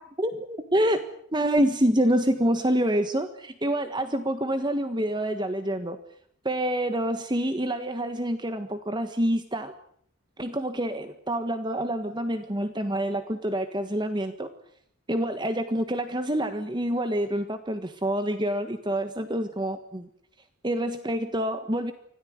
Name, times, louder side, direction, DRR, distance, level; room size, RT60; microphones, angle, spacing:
voice 1, 0.2-1.0 1.3-6.0 6.4-9.7 10.4-14.5 15.1-20.1 20.6-21.9, right 1 dB, 20° right, 9 dB, 1.4 m, -27 dB
26.0 x 17.5 x 9.6 m, 0.67 s
head